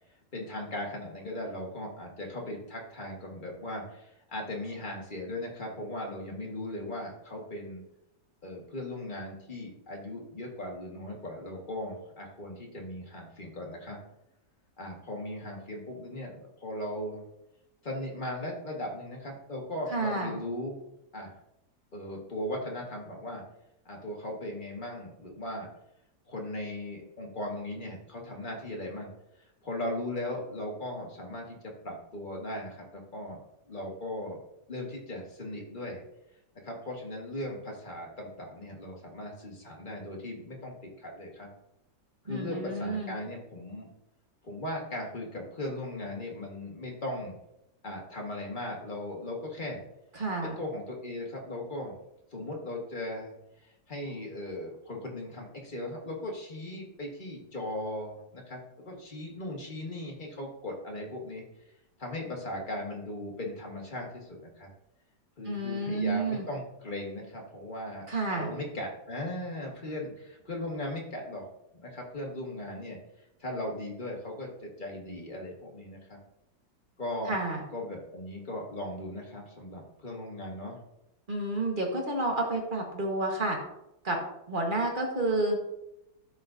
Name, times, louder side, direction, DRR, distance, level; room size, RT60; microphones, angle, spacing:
voice 1, 0.3-7.8 8.4-14.0 14.8-17.2 17.8-20.8 21.1-21.3 21.9-23.4 23.8-25.7 26.3-29.1 29.6-33.4 33.7-34.4 34.7-36.0 36.6-41.5 42.2-43.9 44.4-47.4 47.8-49.8 50.4-51.9 52.3-53.3 53.6-61.4 62.0-64.7 65.4-71.5 71.7-73.0 73.4-76.2 77.0-77.4 77.7-80.8, left 1 dB, 25° left, -1 dB, 1.6 m, -38 dB
voice 2, 19.9-20.3 42.2-43.1 50.1-50.5 65.4-66.4 68.1-68.5 77.3-77.6 81.3-83.6 84.0-84.2 84.5-85.6, right 2 dB, 30° right, 1 dB, 1.3 m, -30 dB
13.0 x 5.1 x 2.6 m, 0.85 s
omnidirectional pair, 2.1 m